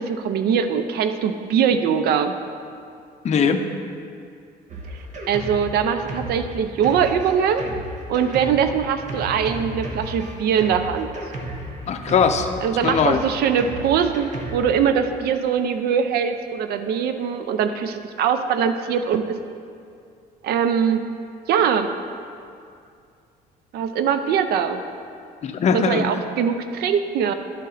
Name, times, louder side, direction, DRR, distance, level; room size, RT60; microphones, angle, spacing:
voice 1, 0.0-2.4 5.3-7.6 8.1-11.1 12.6-19.4 20.4-21.0 21.5-21.9 23.7-24.8 25.7-27.3, right 7 dB, 70° right, 9 dB, 0.5 m, -22 dB
voice 2, 3.2-3.7 11.9-12.5 12.8-13.2 25.4-26.0, left 6 dB, 40° left, 6 dB, 0.6 m, -20 dB
Drum kit, 4.7-14.8, right 1 dB, 45° right, 1.1 m, -34 dB
11.0 x 4.2 x 3.9 m, 2.4 s
cardioid pair, 110°, 17 cm